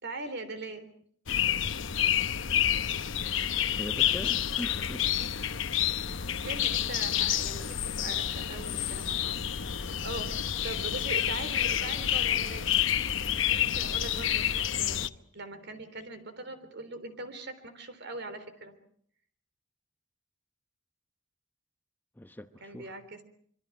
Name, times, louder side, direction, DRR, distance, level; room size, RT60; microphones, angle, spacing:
voice 1, 0.0-0.9 6.4-9.4 9.7-12.7 13.5-18.7 22.6-23.2, right 2 dB, 60° right, 3.7 m, -41 dB
sound 1, 1.3-15.1, left 10 dB, 70° left, 0.9 m, -29 dB
voice 2, 3.8-5.3 6.4-6.6 22.2-23.0, equal, 10° left, 1.0 m, -42 dB
26.0 x 24.0 x 6.0 m
head